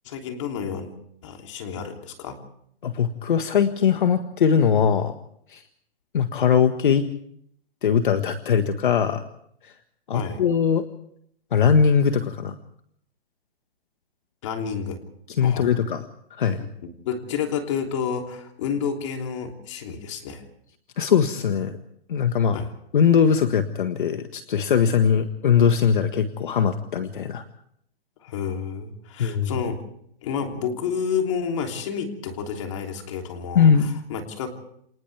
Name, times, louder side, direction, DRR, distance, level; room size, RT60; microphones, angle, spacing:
voice 1, 0.0-0.9 1.2-2.4 10.1-10.4 14.4-15.0 15.4-15.7 17.0-20.4 22.5-22.7 28.2-29.8 30.2-34.5, left 6 dB, 30° left, 4 dB, 3.2 m, -30 dB
voice 2, 2.8-5.1 5.5-5.6 6.1-7.0 7.8-9.2 10.1-10.8 11.5-12.5 15.4-16.0 16.4-16.6 21.0-21.8 22.1-22.6 22.9-27.4 29.2-29.5 33.5-33.9, left 7 dB, 55° left, 8 dB, 1.6 m, -20 dB
29.0 x 26.0 x 3.5 m, 0.69 s
hypercardioid pair, 175°, 31 cm